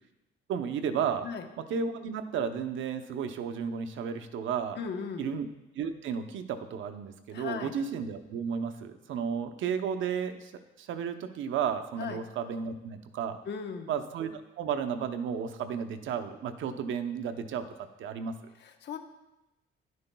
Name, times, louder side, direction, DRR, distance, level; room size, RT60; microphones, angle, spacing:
voice 1, 0.5-1.3 1.6-4.8 5.2-5.5 5.7-13.4 13.9-17.7 18.0-18.4, right 7 dB, 75° right, 8 dB, 0.7 m, -33 dB
voice 2, 4.8-5.2 7.3-7.7 12.0-12.2 13.5-13.9 18.6-19.0, left 6 dB, 60° left, 5 dB, 1.0 m, -37 dB
11.5 x 9.4 x 2.3 m, 0.99 s
cardioid pair, 90°, 20 cm